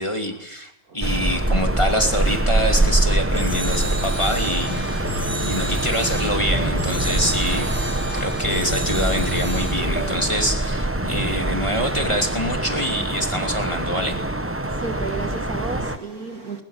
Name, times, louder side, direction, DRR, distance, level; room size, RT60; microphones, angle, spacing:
voice 1, 0.0-4.8 5.3-14.2, equal, 15° left, 2.8 m, -25 dB
voice 2, 0.9-1.7 5.2-5.7 14.7-16.6, right 3 dB, 45° right, 2.1 m, -35 dB
sound 1, 1.0-16.0, right 1 dB, 20° right, 0.3 m, -24 dB
sound 2, 3.3-10.2, left 1 dB, 5° right, 4.9 m, -31 dB
22.5 x 20.0 x 8.3 m
omnidirectional pair, 2.2 m